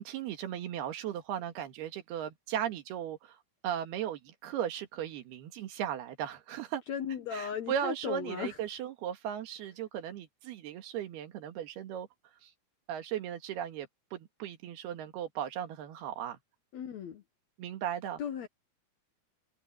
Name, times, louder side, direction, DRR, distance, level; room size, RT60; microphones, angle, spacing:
voice 1, 0.0-6.8 7.3-12.1 12.4-12.5 12.9-16.4 17.6-18.2, right 10 dB, 85° right, 3.7 m, -37 dB
voice 2, 6.9-8.6 16.7-17.2 18.2-18.5, left 8 dB, 65° left, 1.8 m, -36 dB
omnidirectional pair, 4.5 m